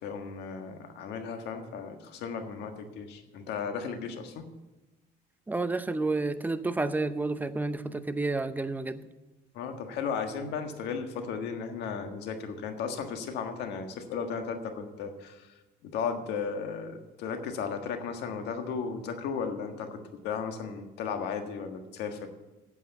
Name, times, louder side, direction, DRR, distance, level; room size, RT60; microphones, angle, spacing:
voice 1, 0.0-4.5 9.5-15.5 15.8-22.3, left 6 dB, 80° left, 6 dB, 1.6 m, -35 dB
voice 2, 5.5-9.1, right 3 dB, 10° right, 11 dB, 0.7 m, -30 dB
8.6 x 7.9 x 9.0 m, 1.1 s
cardioid pair, 110°, 17 cm